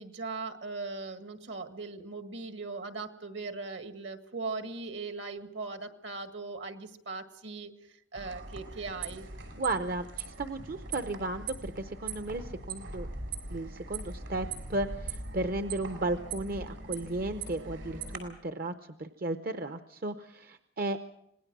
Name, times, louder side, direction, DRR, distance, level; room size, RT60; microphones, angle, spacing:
voice 1, 0.0-7.7 8.1-9.3, right 3 dB, 65° right, 8 dB, 1.8 m, -39 dB
sound 1, 8.1-18.2, right 4 dB, 85° right, 6.2 m, -41 dB
voice 2, 9.5-13.1 13.5-18.7 19.0-21.0, right 2 dB, 50° right, 9 dB, 0.8 m, -34 dB
26.0 x 19.5 x 6.2 m, 0.78 s
head